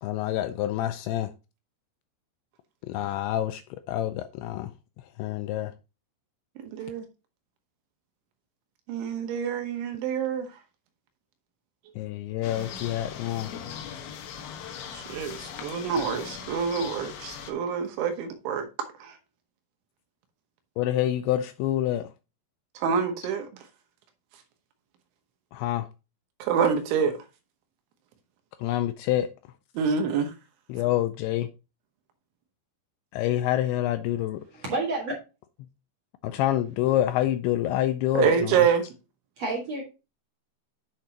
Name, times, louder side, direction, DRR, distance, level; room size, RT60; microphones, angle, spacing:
voice 1, 0.0-1.3 2.9-3.6 3.9-4.7 5.2-5.7 12.0-13.5 20.8-22.1 25.5-25.9 28.6-29.3 30.7-31.5 33.1-34.4 36.2-38.6, left 13 dB, 90° left, 2.6 m, -27 dB
voice 2, 6.7-7.0 8.9-10.5 14.9-18.7 19.0-19.2 22.8-23.5 26.4-27.1 29.8-30.3 38.1-38.8, right 7 dB, 75° right, 3.3 m, -26 dB
sound 1, 12.4-17.5, left 8 dB, 70° left, 3.1 m, -39 dB
voice 3, 34.5-35.2 39.4-39.8, right 2 dB, 55° right, 1.8 m, -29 dB
9.9 x 6.6 x 2.8 m
omnidirectional pair, 5.8 m